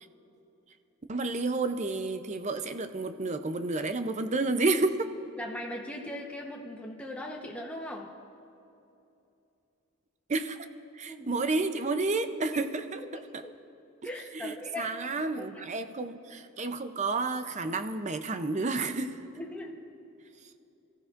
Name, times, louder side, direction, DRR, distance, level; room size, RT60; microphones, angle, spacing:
voice 1, 1.1-5.1 10.3-10.6 11.0-13.0 13.3-13.4 14.3-19.2, right 3 dB, 35° right, 9 dB, 0.6 m, -30 dB
voice 2, 5.4-8.1 11.1-11.4 13.0-13.5 14.0-15.7 19.4-19.8, left 1 dB, 5° left, -1 dB, 0.9 m, -40 dB
28.5 x 14.5 x 2.5 m, 2.8 s
head